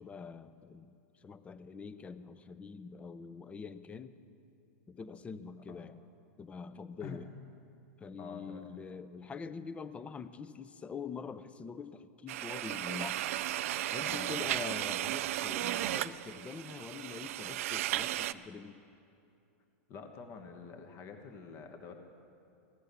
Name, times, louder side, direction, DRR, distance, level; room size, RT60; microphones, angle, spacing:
voice 1, 0.0-4.2 4.9-6.0 6.4-7.3 8.0-13.2 13.9-18.8, left 5 dB, 15° left, 13 dB, 0.5 m, -45 dB
voice 2, 8.2-8.7 14.0-14.5 19.9-21.9, left 5 dB, 40° left, 5 dB, 1.3 m, -47 dB
sound 1, 12.3-18.3, right 13 dB, 70° right, 0.4 m, -35 dB
16.0 x 11.5 x 6.9 m, 2.7 s
supercardioid pair, 130°, 8 cm